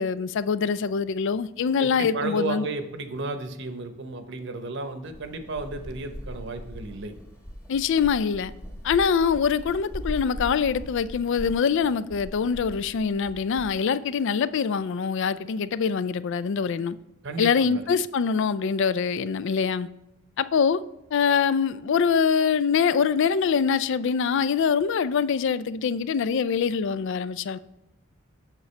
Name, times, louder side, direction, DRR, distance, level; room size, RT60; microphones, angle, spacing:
voice 1, 0.0-2.7 7.7-8.5 8.8-16.9 17.4-19.9 20.4-20.8 21.1-27.6, left 6 dB, 65° left, 0.4 m, -24 dB
voice 2, 1.8-7.1 17.2-17.9, right 3 dB, 60° right, 0.9 m, -33 dB
sound 1, 5.0-13.7, equal, 15° left, 1.2 m, -40 dB
8.2 x 7.0 x 3.2 m
head